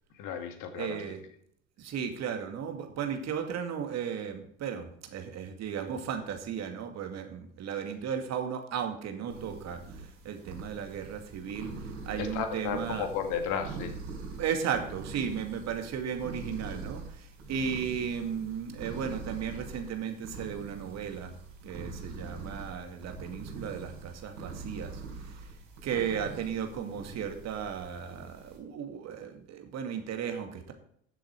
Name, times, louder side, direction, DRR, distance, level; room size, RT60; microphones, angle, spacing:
voice 1, 0.2-1.0 12.2-13.9, left 7 dB, 55° left, 7 dB, 2.1 m, -33 dB
voice 2, 0.8-1.2 1.8-13.1 14.4-21.3 21.6-25.5 25.8-30.7, right 7 dB, 45° right, 6 dB, 2.2 m, -35 dB
sound 1, 9.3-28.6, right 4 dB, 60° right, 4.4 m, -44 dB
13.0 x 7.6 x 4.7 m, 0.68 s
hypercardioid pair, 70°, 37 cm